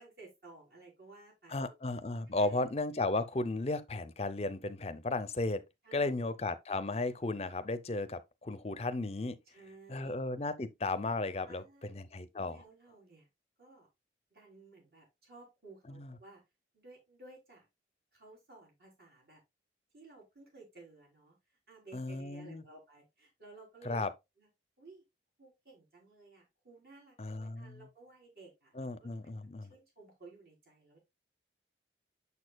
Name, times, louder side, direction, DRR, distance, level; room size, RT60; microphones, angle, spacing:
voice 1, 0.0-1.7 2.3-2.6 5.8-6.4 9.5-10.2 11.5-12.0 12.4-13.3 13.6-13.9 14.3-16.4 16.7-17.7 18.1-19.4 19.9-24.1 24.4-24.5 24.8-25.0 25.4-29.3 29.7-31.0, right 3 dB, 55° right, 3.6 m, -56 dB
voice 2, 1.5-5.6 5.9-9.4 9.9-11.6 11.9-12.6 15.9-16.1 21.9-22.6 23.8-24.1 27.2-27.8 28.8-29.7, left 2 dB, 35° left, 0.6 m, -35 dB
7.1 x 6.4 x 2.3 m
head